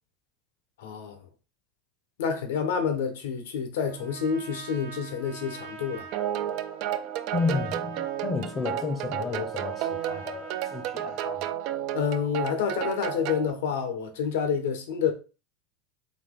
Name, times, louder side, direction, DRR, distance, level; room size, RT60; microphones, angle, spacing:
voice 1, 0.8-1.2 2.2-6.1 11.9-15.1, left 7 dB, 85° left, 1.0 m, -28 dB
Trumpet, 3.8-11.4, right 5 dB, 70° right, 0.8 m, -44 dB
sound 1, 6.1-13.5, right 11 dB, 55° right, 0.4 m, -32 dB
voice 2, 7.3-11.6, left 4 dB, 25° left, 0.7 m, -32 dB
4.1 x 3.0 x 3.7 m
supercardioid pair, 140°, 0 cm